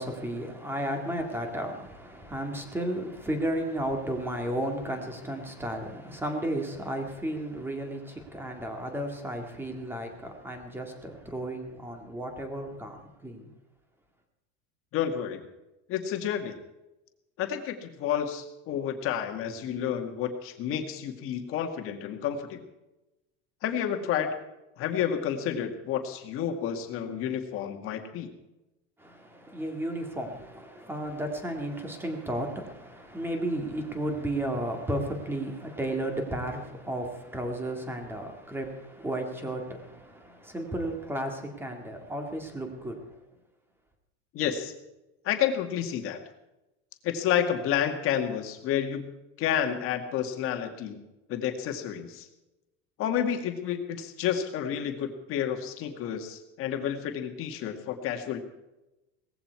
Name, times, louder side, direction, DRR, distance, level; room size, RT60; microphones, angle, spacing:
voice 1, 0.0-13.5 29.0-43.2, right 1 dB, 5° right, 2.1 m, -33 dB
voice 2, 14.9-15.4 15.9-16.6 17.4-22.6 23.6-24.3 24.8-28.3 44.3-44.7 45.2-46.2 47.0-49.1 49.4-51.0 51.3-52.3 53.0-58.4, left 9 dB, 40° left, 2.1 m, -30 dB
18.5 x 15.0 x 4.7 m
cardioid pair, 165°, 33 cm